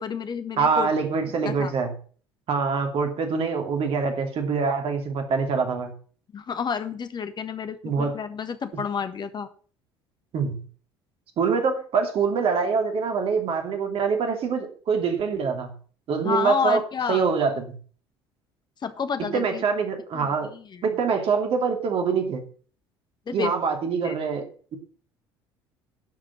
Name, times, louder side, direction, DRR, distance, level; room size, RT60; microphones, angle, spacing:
voice 1, 0.0-0.9 1.4-1.7 6.3-9.5 16.2-17.2 18.8-19.6 20.1-21.0 23.3-23.5 24.0-24.1, left 6 dB, 35° left, 10 dB, 1.5 m, -30 dB
voice 2, 0.6-1.9 2.5-5.9 7.8-8.2 8.7-8.8 10.3-10.6 11.4-15.7 16.1-16.8 17.1-17.6 19.3-20.5 20.8-22.4 23.3-24.5, right 5 dB, 50° right, 4 dB, 2.9 m, -24 dB
12.0 x 5.2 x 7.3 m, 0.43 s
figure-of-eight pair, 60°, 13 cm